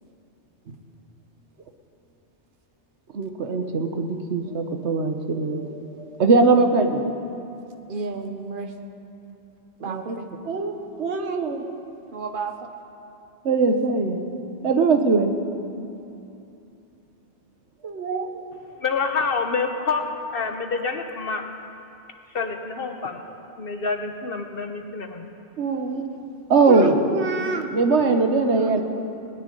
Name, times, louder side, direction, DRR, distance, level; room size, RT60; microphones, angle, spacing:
voice 1, 3.1-5.8 6.2-7.0 9.8-10.2 10.4-11.6 13.4-14.2 14.6-15.3 17.8-18.3 25.6-26.0 26.5-28.8, right 3 dB, 75° right, 6 dB, 1.3 m, -21 dB
voice 2, 7.9-8.7 9.8-10.3 12.1-12.5, right 4 dB, 50° right, 6 dB, 1.1 m, -32 dB
voice 3, 18.7-20.0 20.3-21.4 22.3-23.2 23.6-25.3 25.9-26.1, left 4 dB, 55° left, 5 dB, 1.2 m, -27 dB
19.5 x 6.9 x 9.8 m, 2.7 s
omnidirectional pair, 1.2 m